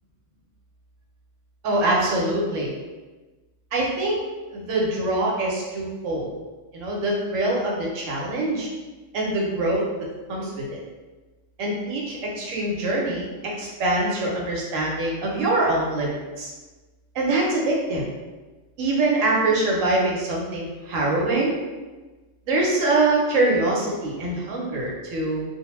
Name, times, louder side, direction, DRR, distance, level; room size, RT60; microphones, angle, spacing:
voice 1, 1.6-2.7 3.7-4.2 4.5-6.3 6.7-8.7 9.1-9.8 10.3-10.8 11.6-13.3 13.6-16.5 17.1-18.1 18.8-21.5 22.5-25.4, right 2 dB, 80° right, -3 dB, 1.1 m, -24 dB
2.3 x 2.1 x 3.0 m, 1.2 s
omnidirectional pair, 1.3 m